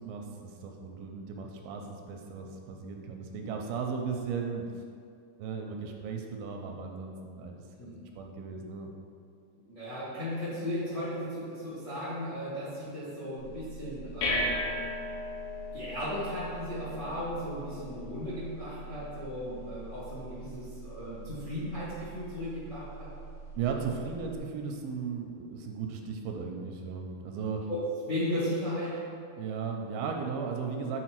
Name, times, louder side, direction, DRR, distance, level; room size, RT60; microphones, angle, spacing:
voice 1, 0.0-4.8 5.4-8.9 23.6-27.6 29.4-31.0, right 5 dB, 85° right, 2 dB, 2.3 m, -36 dB
voice 2, 9.7-14.6 15.7-23.1 27.7-27.8 28.1-29.0, left 1 dB, 60° left, -10 dB, 0.7 m, -36 dB
sound 1, 13.4-24.4, equal, 85° left, 2.9 m, -39 dB
7.4 x 4.2 x 4.5 m, 2.3 s
omnidirectional pair, 4.3 m